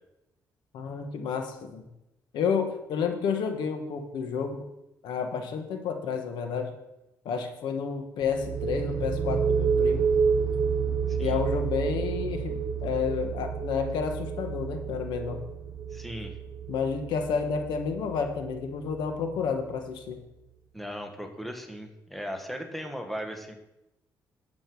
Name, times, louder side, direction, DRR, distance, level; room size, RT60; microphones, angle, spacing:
voice 1, 0.7-1.8 2.3-4.6 5.0-6.7 7.2-10.1 11.2-15.4 16.7-20.2, left 6 dB, 85° left, 5 dB, 1.4 m, -30 dB
sound 1, 8.2-19.7, right 6 dB, 45° right, 1.5 m, -30 dB
voice 2, 11.1-11.4 15.9-16.4 20.7-23.5, equal, ahead, 4 dB, 1.4 m, -37 dB
10.5 x 7.7 x 4.7 m, 0.90 s
cardioid pair, 105°, 7 cm